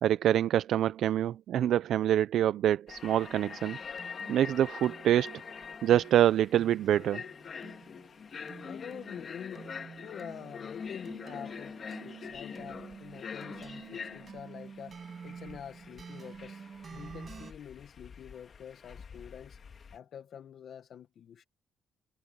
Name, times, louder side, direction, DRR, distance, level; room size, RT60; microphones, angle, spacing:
voice 1, 0.0-3.8 4.3-5.4 5.8-7.2, right 11 dB, 75° right, 0.5 m, -26 dB
sound 1, 2.9-20.0, left 6 dB, 45° left, 2.1 m, -45 dB
sound 2, 3.6-17.5, right 6 dB, 45° right, 7.6 m, -49 dB
voice 2, 8.7-9.7 10.0-19.6 19.9-21.4, left 8 dB, 65° left, 1.3 m, -47 dB
cardioid pair, 90°, 0 cm